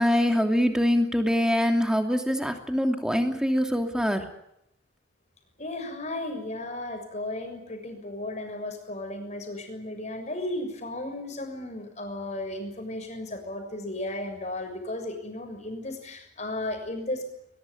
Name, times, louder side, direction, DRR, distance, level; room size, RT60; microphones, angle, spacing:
voice 1, 0.0-4.2, equal, 5° right, 5 dB, 2.7 m, -24 dB
voice 2, 5.6-17.2, left 1 dB, 35° left, 5 dB, 6.8 m, -35 dB
22.0 x 21.5 x 9.9 m, 0.79 s
head